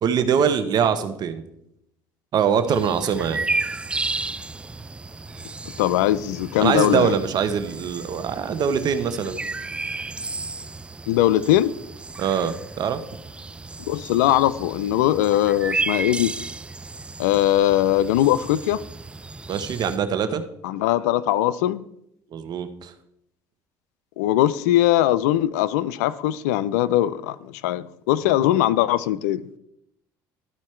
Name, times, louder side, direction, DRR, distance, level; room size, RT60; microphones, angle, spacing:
voice 1, 0.0-1.4 2.3-3.4 6.6-9.4 12.2-13.0 19.5-20.4 22.3-22.9, right 7 dB, 55° right, 1.0 m, -23 dB
sound 1, 2.7-20.0, right 3 dB, 15° right, 0.3 m, -33 dB
voice 2, 5.8-7.1 11.1-11.8 13.9-16.4 17.2-18.8 20.6-21.8 24.2-29.4, left 13 dB, 85° left, 0.4 m, -20 dB
12.5 x 4.5 x 4.4 m
supercardioid pair, 75°, 9 cm